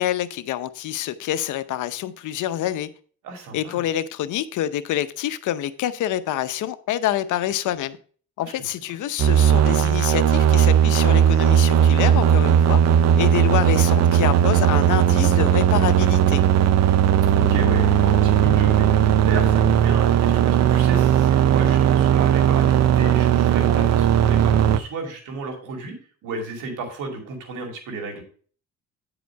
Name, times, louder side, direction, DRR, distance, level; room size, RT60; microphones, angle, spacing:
voice 1, 0.0-2.9 3.5-8.0 8.4-12.8 13.2-16.4, left 12 dB, 80° left, 0.7 m, -26 dB
voice 2, 3.2-3.8 8.4-8.5 17.3-19.0 19.2-25.9 26.2-28.2, right 3 dB, 85° right, 2.5 m, -32 dB
sound 1, 9.2-24.8, right 9 dB, 60° right, 0.6 m, -17 dB
9.3 x 5.0 x 4.5 m
cardioid pair, 90°, 30 cm